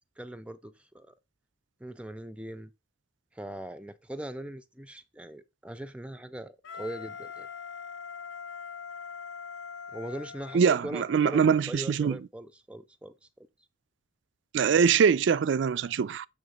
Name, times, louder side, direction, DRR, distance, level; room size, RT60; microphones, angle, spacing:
voice 1, 0.2-1.1 1.8-2.7 3.3-7.5 9.9-13.1, right 1 dB, 5° right, 0.4 m, -40 dB
Wind instrument woodwind instrument, 6.6-11.4, left 6 dB, 85° left, 0.7 m, -42 dB
voice 2, 10.5-12.2 14.5-16.3, right 6 dB, 65° right, 0.3 m, -23 dB
7.2 x 3.5 x 5.1 m
head